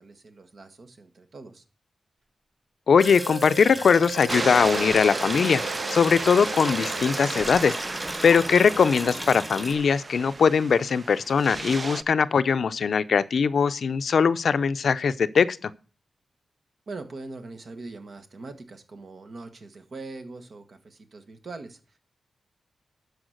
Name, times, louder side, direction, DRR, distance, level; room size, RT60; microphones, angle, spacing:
voice 1, 0.0-1.6 16.9-22.0, right 3 dB, 60° right, 1.4 m, -42 dB
voice 2, 2.9-5.6 5.9-7.7 8.2-15.7, left 6 dB, 75° left, 0.5 m, -21 dB
Wind instrument woodwind instrument, 2.9-7.7, right 6 dB, 85° right, 2.5 m, -39 dB
sound 1, 3.0-9.7, right 1 dB, 10° right, 2.0 m, -36 dB
sound 2, 4.3-12.0, right 3 dB, 40° right, 0.4 m, -33 dB
12.0 x 4.9 x 6.4 m
cardioid pair, 75°, 0 cm